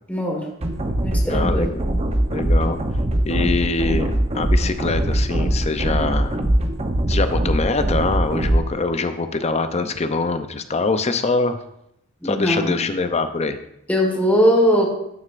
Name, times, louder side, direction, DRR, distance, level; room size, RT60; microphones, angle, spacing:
voice 1, 0.1-0.4 1.0-1.7 12.2-12.8 13.9-14.9, equal, 10° left, -1 dB, 1.5 m, -19 dB
sound 1, 0.6-8.6, right 1 dB, 35° right, 0.7 m, -21 dB
voice 2, 1.3-1.9 2.3-2.8 3.3-4.1 4.3-6.4 7.1-11.6 12.2-13.6, left 3 dB, 35° left, 9 dB, 0.6 m, -23 dB
12.5 x 6.4 x 2.5 m, 0.78 s
head